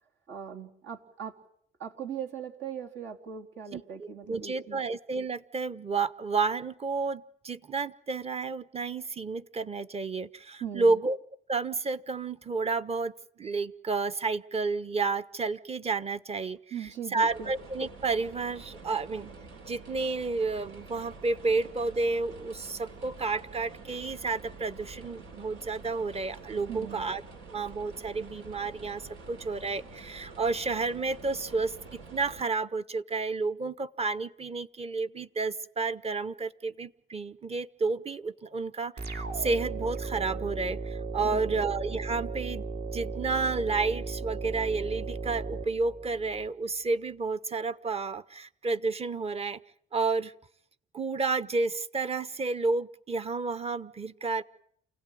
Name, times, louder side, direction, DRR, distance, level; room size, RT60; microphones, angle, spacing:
voice 1, 0.3-1.3 1.8-4.8 10.6-11.0 16.7-17.5 26.7-27.1 41.2-41.6, right 8 dB, 70° right, 1 dB, 3.9 m, -39 dB
voice 2, 3.7-11.2 11.5-16.6 17.1-19.3 19.7-27.2 27.5-31.7 32.1-42.6 42.9-49.6 49.9-50.3 50.9-54.4, right 3 dB, 30° right, 14 dB, 1.1 m, -31 dB
sound 1, 17.3-32.4, right 4 dB, 85° right, 4.8 m, -47 dB
sound 2, 39.0-46.5, right 3 dB, 55° right, 2.6 m, -36 dB
29.0 x 17.5 x 9.4 m, 0.68 s
cardioid pair, 90°, 20 cm